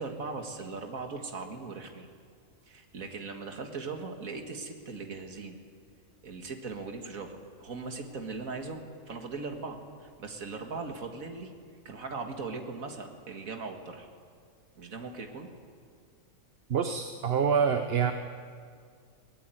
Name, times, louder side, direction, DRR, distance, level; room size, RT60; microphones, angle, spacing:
voice 1, 0.0-2.1 2.6-5.6 6.2-11.5 11.9-14.1 14.8-15.5, right 4 dB, 80° right, 4 dB, 2.3 m, -39 dB
voice 2, 16.7-18.1, right 7 dB, 50° right, 7 dB, 1.1 m, -26 dB
23.0 x 19.0 x 9.2 m, 2.1 s
omnidirectional pair, 1.4 m